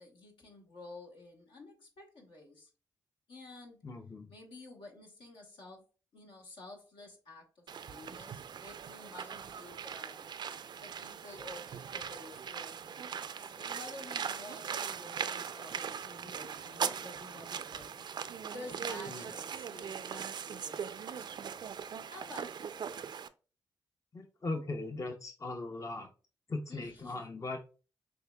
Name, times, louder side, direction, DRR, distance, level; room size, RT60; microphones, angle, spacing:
voice 1, 0.0-2.7 3.3-3.8 4.3-5.8 6.1-10.3 10.8-18.1 18.5-21.8 22.1-22.9 26.7-27.2, left 2 dB, 75° left, 1.1 m, -51 dB
voice 2, 3.8-4.3 19.1-19.3 24.1-26.1 26.5-27.6, left 2 dB, 40° left, 0.6 m, -39 dB
sound 1, 7.7-23.3, right 7 dB, 60° right, 0.3 m, -40 dB
6.5 x 2.7 x 2.2 m
supercardioid pair, 40°, 9 cm